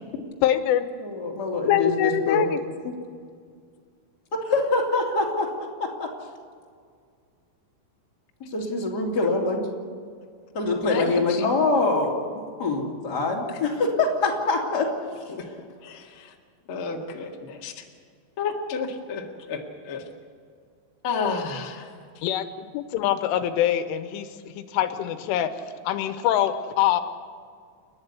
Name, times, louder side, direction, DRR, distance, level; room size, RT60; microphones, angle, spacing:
voice 1, 0.4-0.9 1.7-2.7 22.2-24.3 24.6-25.5 25.8-27.0, left 11 dB, 85° left, 10 dB, 3.3 m, -24 dB
voice 2, 1.0-2.5 2.8-2.9 4.4-5.5 6.0-6.1 8.4-9.6 10.5-12.2 12.6-14.9, left 3 dB, 25° left, -2 dB, 2.7 m, -24 dB
voice 3, 9.2-9.6 10.8-11.5 13.5-13.6 15.3-15.5 15.8-16.3 16.7-17.8 18.4-20.0 21.0-21.9, left 4 dB, 65° left, 0 dB, 1.3 m, -31 dB
30.0 x 10.5 x 9.6 m, 2.1 s
omnidirectional pair, 5.7 m